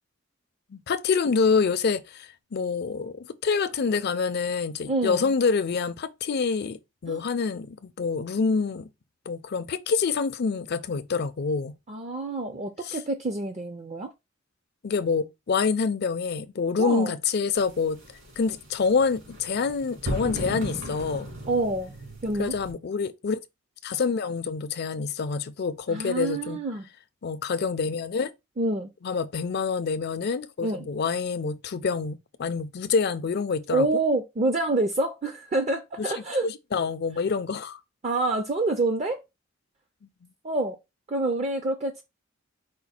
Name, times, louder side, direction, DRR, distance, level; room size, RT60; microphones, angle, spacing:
voice 1, 0.7-8.9 9.3-11.8 12.8-13.0 14.8-18.0 18.4-21.3 22.4-23.4 23.8-26.6 27.2-28.3 29.0-33.9 36.4-37.8, left 5 dB, 50° left, 0.4 m, -27 dB
voice 2, 4.9-5.3 7.1-7.2 11.9-14.1 16.8-17.1 21.5-21.9 22.2-22.5 25.9-26.9 28.6-28.9 30.6-30.9 33.7-36.5 38.0-39.2 40.4-40.8 41.1-42.0, right 2 dB, 35° right, 0.5 m, -27 dB
sound 1, 17.6-22.7, equal, 70° right, 2.7 m, -36 dB
5.0 x 2.3 x 4.2 m
head